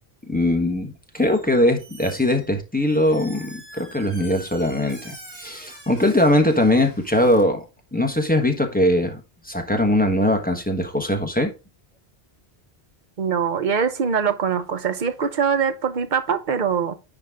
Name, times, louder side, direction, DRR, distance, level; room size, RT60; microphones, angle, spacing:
voice 1, 0.2-7.6 7.9-11.5, left 1 dB, 10° left, 1.1 m, -21 dB
Squeak, 1.1-1.5 1.8-7.4, right 1 dB, 75° right, 2.5 m, -44 dB
voice 2, 13.2-16.9, right 6 dB, 50° right, 0.9 m, -23 dB
9.9 x 4.0 x 3.6 m
omnidirectional pair, 1.1 m